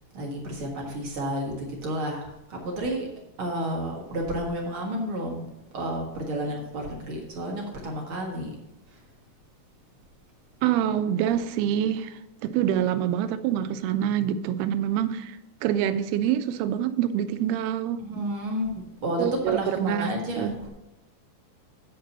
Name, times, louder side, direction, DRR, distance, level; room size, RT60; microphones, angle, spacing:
voice 1, 0.1-3.1 3.4-5.5 5.7-8.5 18.0-20.7, equal, 50° right, -1 dB, 1.8 m, -31 dB
voice 2, 10.6-12.1 12.4-15.4 15.6-18.0 19.2-20.1 20.4-20.5, right 10 dB, 90° right, 11 dB, 2.6 m, -26 dB
8.8 x 5.2 x 6.7 m, 0.93 s
omnidirectional pair, 4.4 m